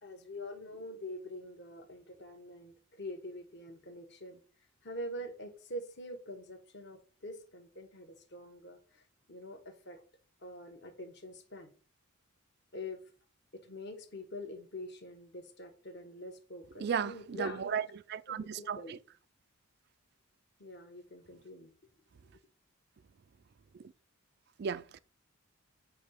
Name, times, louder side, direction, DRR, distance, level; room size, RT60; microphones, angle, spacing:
voice 1, 0.0-4.4 4.8-10.0 10.4-11.7 12.7-13.0 13.5-17.7 18.3-19.0 20.6-21.7, left 1 dB, 50° left, 1.2 m, -45 dB
voice 2, 16.8-17.8 18.1-18.8 24.6-25.0, right 7 dB, 45° right, 0.3 m, -34 dB
8.3 x 2.8 x 5.7 m
head